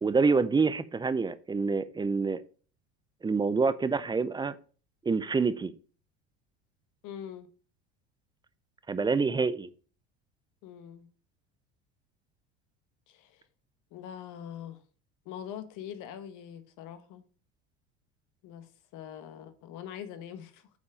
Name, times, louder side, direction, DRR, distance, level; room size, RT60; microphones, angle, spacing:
voice 1, 0.0-2.4 3.2-4.6 5.0-5.7 8.9-9.7, right 4 dB, 15° right, 0.4 m, -27 dB
voice 2, 7.0-7.5 10.6-11.1 13.1-13.5 13.9-14.8 15.2-17.2 18.4-20.7, left 9 dB, 55° left, 1.2 m, -43 dB
7.2 x 4.3 x 5.0 m
hypercardioid pair, 90°, 36 cm